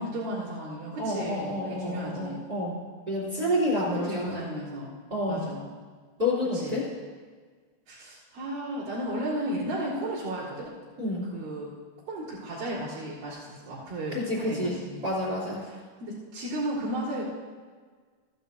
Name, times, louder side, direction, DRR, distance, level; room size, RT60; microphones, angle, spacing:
voice 1, 0.0-2.4 3.8-4.9 5.3-5.7 6.5-6.8 7.9-10.7 11.3-11.7 12.1-15.0 15.6-17.2, right 1 dB, 55° right, -11 dB, 4.7 m, -34 dB
voice 2, 1.0-2.7 3.1-4.4 5.1-5.4 6.2-6.8 11.0-11.3 14.1-15.6, left 1 dB, 25° right, -4 dB, 2.8 m, -29 dB
16.0 x 11.0 x 2.7 m, 1.5 s
omnidirectional pair, 5.0 m